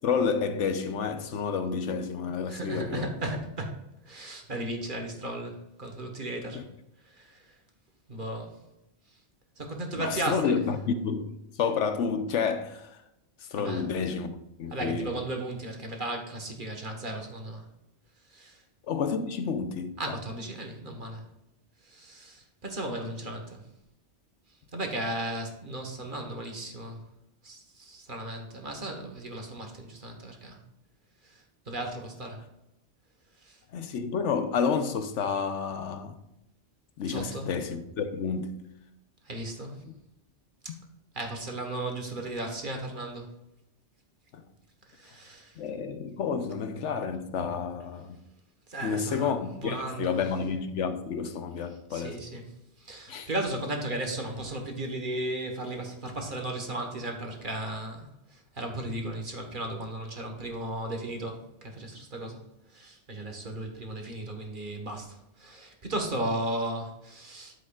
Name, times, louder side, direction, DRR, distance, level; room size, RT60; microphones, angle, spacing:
voice 1, 0.0-3.1 6.5-6.7 10.0-13.0 13.4-14.3 14.6-15.2 18.8-20.2 33.7-36.2 37.0-38.6 39.8-39.9 44.3-44.4 45.6-48.2 48.8-52.2 53.1-53.3, left 6 dB, 85° left, 1.1 m, -30 dB
voice 2, 2.5-3.7 4.0-6.6 7.1-7.4 8.1-8.6 9.6-10.6 13.6-13.9 14.7-17.7 18.3-18.6 20.0-21.3 21.8-23.6 24.7-27.0 27.4-30.6 31.2-32.4 33.4-33.6 37.1-37.5 39.3-39.8 41.1-43.3 44.9-45.6 48.7-50.2 51.9-52.4 52.8-62.4 62.7-67.6, right 1 dB, 45° right, 1.5 m, -35 dB
10.0 x 7.7 x 2.4 m
omnidirectional pair, 1.2 m